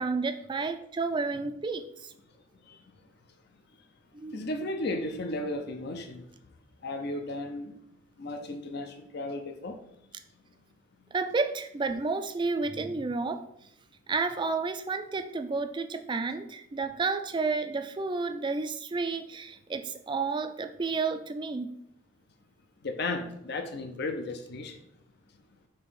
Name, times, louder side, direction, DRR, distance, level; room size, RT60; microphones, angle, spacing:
voice 1, 0.0-2.1 4.1-4.4 11.1-13.4 14.1-21.7, right 4 dB, 25° right, 8 dB, 0.4 m, -31 dB
voice 2, 4.3-6.2 6.8-7.8 8.2-9.8 22.8-24.8, left 2 dB, 55° left, 6 dB, 0.6 m, -34 dB
5.5 x 3.4 x 5.5 m, 0.76 s
head